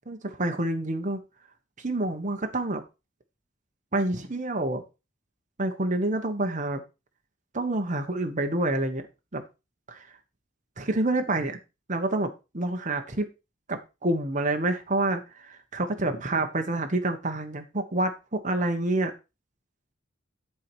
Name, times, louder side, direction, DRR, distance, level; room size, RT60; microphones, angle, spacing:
voice 1, 0.1-1.2 1.8-2.8 3.9-4.8 5.6-6.8 7.5-9.0 9.3-9.4 9.9-10.0 10.8-11.6 11.9-13.3 13.7-19.1, right 2 dB, 40° right, 5 dB, 1.2 m, -28 dB
11.0 x 4.8 x 4.5 m, 0.27 s
head